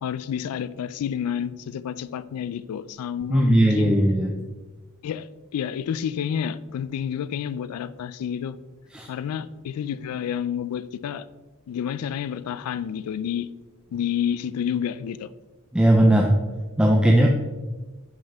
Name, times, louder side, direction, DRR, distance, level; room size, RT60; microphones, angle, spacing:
voice 1, 0.0-4.0 5.0-8.6 9.1-11.3 11.7-13.5 13.9-15.3, left 8 dB, 90° left, 16 dB, 0.3 m, -29 dB
voice 2, 3.3-4.3 8.9-9.1 15.7-16.5 16.8-17.3, right 1 dB, 5° right, 0 dB, 0.3 m, -18 dB
5.4 x 5.3 x 3.4 m, 1.2 s
head